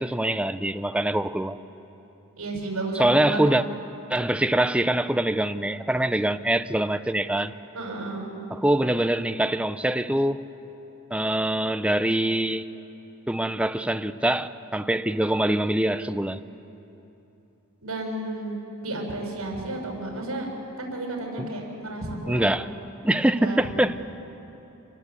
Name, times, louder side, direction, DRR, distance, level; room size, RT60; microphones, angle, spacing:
voice 1, 0.0-1.6 3.0-3.6 4.1-7.5 8.5-10.4 11.1-12.6 13.3-16.4 21.4-21.5 22.3-22.7 23.0-24.0, right 1 dB, 5° right, 0.5 m, -24 dB
voice 2, 2.4-3.6 7.7-8.3 17.8-20.5 20.8-22.6 23.4-23.6, right 2 dB, 75° right, 6.4 m, -32 dB
27.0 x 20.0 x 8.4 m
head